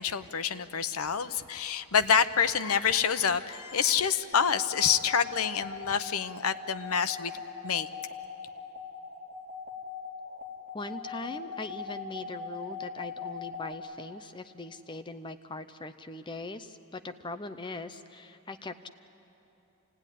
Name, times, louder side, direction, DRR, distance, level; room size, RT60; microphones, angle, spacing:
voice 1, 0.0-7.3 7.6-7.9, left 7 dB, 80° left, 11 dB, 0.8 m, -27 dB
sound 1, 4.3-13.7, left 5 dB, 35° right, 3.0 m, -40 dB
voice 2, 10.7-18.9, left 2 dB, 20° left, 10 dB, 0.6 m, -41 dB
27.5 x 18.0 x 10.0 m, 3.0 s
head